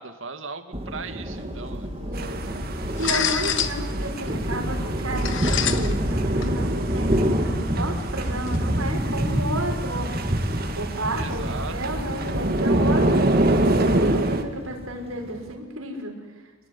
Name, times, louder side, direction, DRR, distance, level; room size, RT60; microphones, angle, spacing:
voice 1, 0.0-1.9 11.1-12.0, right 4 dB, 65° right, 8 dB, 2.2 m, -37 dB
Thunder, 0.7-15.5, equal, 25° right, 2.3 m, -28 dB
sound 1, 1.3-8.6, left 5 dB, 60° left, 1.3 m, -31 dB
voice 2, 2.0-10.1 10.7-16.2, right 1 dB, 80° right, 2 dB, 6.1 m, -32 dB
sound 2, 2.1-14.4, right 1 dB, 45° right, 2.1 m, -27 dB
28.0 x 19.5 x 9.9 m, 1.3 s
head